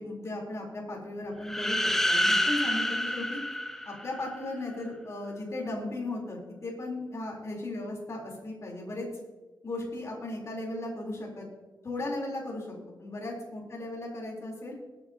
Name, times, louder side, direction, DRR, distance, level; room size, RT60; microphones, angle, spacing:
voice 1, 0.0-3.4 3.9-9.1 9.6-11.5 11.8-14.8, left 2 dB, 40° left, -2 dB, 3.6 m, -36 dB
sound 1, 1.4-4.4, left 1 dB, 5° left, 0.8 m, -28 dB
21.5 x 9.0 x 2.8 m, 1.3 s
wide cardioid pair, 150°, 8 cm